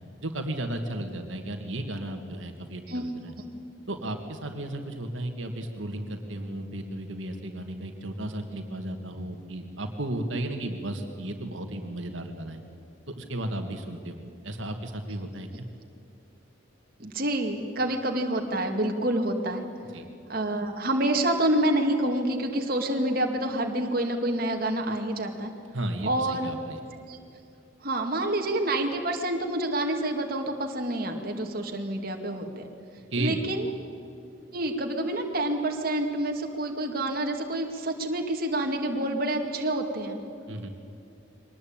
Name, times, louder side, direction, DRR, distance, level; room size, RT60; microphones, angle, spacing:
voice 1, 0.2-3.4 3.9-12.6 13.1-15.7 19.9-20.1 25.7-26.8 33.1-33.4 40.5-40.7, right 1 dB, 75° right, 5 dB, 2.1 m, -34 dB
voice 2, 17.0-19.6 20.3-25.5 26.0-26.5 27.1-27.2 27.8-32.6 33.2-33.6 34.5-40.2, right 1 dB, 45° right, 3 dB, 2.3 m, -28 dB
23.5 x 19.5 x 8.9 m, 2.5 s
head